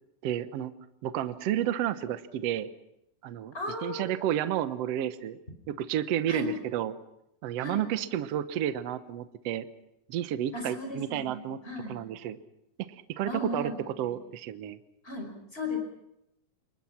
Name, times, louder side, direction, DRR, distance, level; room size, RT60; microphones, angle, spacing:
voice 1, 0.2-0.7 1.0-2.7 3.2-3.5 3.8-5.4 5.7-6.9 7.4-9.7 10.1-11.6 11.9-12.4 13.1-13.7 14.0-14.8, right 11 dB, 70° right, 11 dB, 1.6 m, -31 dB
voice 2, 3.5-4.1 6.3-6.5 7.6-7.9 10.5-12.0 13.3-13.8 15.0-15.8, left 2 dB, 15° left, 4 dB, 5.5 m, -35 dB
27.5 x 23.5 x 5.9 m, 0.82 s
omnidirectional pair, 4.1 m